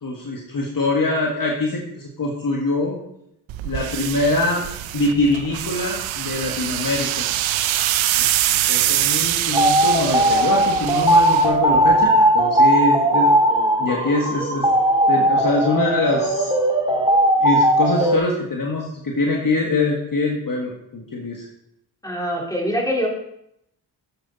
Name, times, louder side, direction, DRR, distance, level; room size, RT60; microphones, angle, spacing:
voice 1, 0.0-3.0 3.6-4.6 4.9-7.3 8.2-8.3 8.7-13.3 13.8-14.7 15.1-16.5 17.4-21.5, left 2 dB, 45° left, -1 dB, 1.7 m, -23 dB
sound 1, 3.5-12.1, right 13 dB, 80° right, 0.7 m, -24 dB
sound 2, 9.5-18.2, right 1 dB, 10° right, 2.0 m, -18 dB
voice 2, 22.0-23.1, equal, 10° left, -3 dB, 3.8 m, -23 dB
9.1 x 7.8 x 4.1 m, 0.78 s
supercardioid pair, 45°, 46 cm